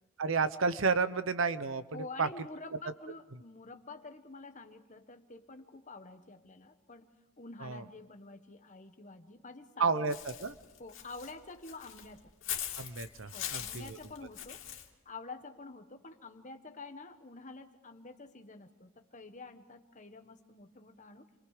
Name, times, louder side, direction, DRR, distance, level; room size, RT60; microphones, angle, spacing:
voice 1, 0.2-2.3 7.6-7.8 9.8-10.5 12.8-14.0, right 4 dB, 60° right, 13 dB, 0.8 m, -31 dB
voice 2, 1.9-10.2 10.8-12.3 13.3-14.6 15.0-21.2, left 3 dB, 35° left, 7 dB, 1.4 m, -48 dB
Walk footsteps / Bird, 10.1-14.9, left 11 dB, 60° left, 2.9 m, -41 dB
29.5 x 23.5 x 5.0 m, 1.1 s
head